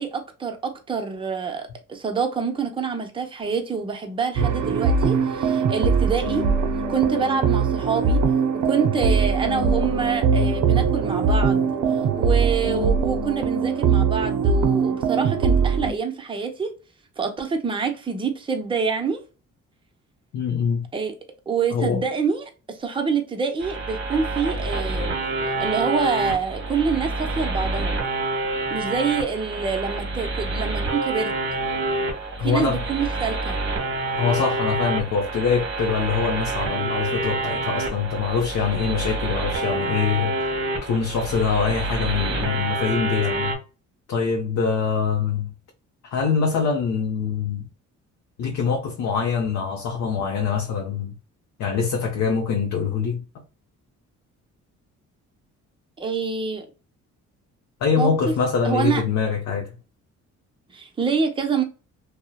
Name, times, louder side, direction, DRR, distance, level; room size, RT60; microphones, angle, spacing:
voice 1, 0.0-6.4 6.9-8.2 8.5-16.7 17.2-19.2 20.9-21.1 21.5-25.2 25.6-28.0 28.7-31.3 32.4-33.6 56.0-56.7 58.0-58.1 58.6-59.0 60.7-61.6, right 5 dB, 15° right, 0.5 m, -26 dB
sound 1, 4.4-15.9, right 5 dB, 65° right, 0.5 m, -21 dB
voice 2, 20.3-20.9 21.7-22.0 32.4-32.8 34.2-40.5 40.8-43.6 44.1-45.5 46.0-47.7 48.4-51.2 51.6-53.4 57.8-59.7, left 6 dB, 60° left, 0.6 m, -24 dB
sound 2, 23.6-43.6, right 2 dB, 40° right, 0.8 m, -27 dB
2.6 x 2.1 x 2.2 m
cardioid pair, 90°, 30 cm